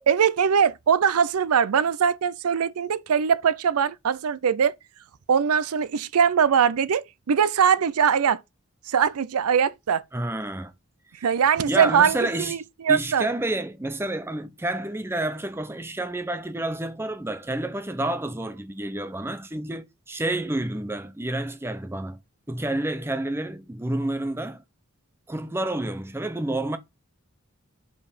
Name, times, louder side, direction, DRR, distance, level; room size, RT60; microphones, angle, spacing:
voice 1, 0.1-4.8 5.3-8.4 8.9-10.0 11.2-12.6 12.8-13.3, right 7 dB, 90° right, 0.5 m, -21 dB
voice 2, 10.1-10.7 11.7-12.6 12.9-22.2 22.5-24.6 25.3-26.8, right 1 dB, 10° right, 0.5 m, -29 dB
5.3 x 4.6 x 5.0 m
head